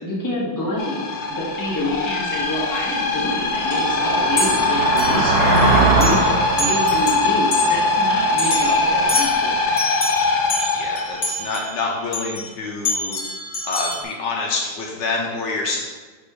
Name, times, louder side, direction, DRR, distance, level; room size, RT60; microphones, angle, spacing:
voice 1, 0.0-9.5, left 1 dB, 10° left, -5 dB, 1.2 m, -27 dB
sound 1, 0.8-11.6, left 3 dB, 90° left, 0.6 m, -21 dB
sound 2, 1.9-2.0 2.5-9.1, right 3 dB, 60° right, 1.2 m, -23 dB
sound 3, 3.7-3.9 4.4-5.6 6.0-6.3 6.6-7.8 8.4-12.5 12.8-14.0, left 1 dB, 40° left, 1.0 m, -27 dB
voice 2, 8.9-9.4 10.7-13.2 13.6-15.8, left 3 dB, 70° left, -1 dB, 1.3 m, -27 dB
5.4 x 4.3 x 4.9 m, 1.3 s
omnidirectional pair, 2.2 m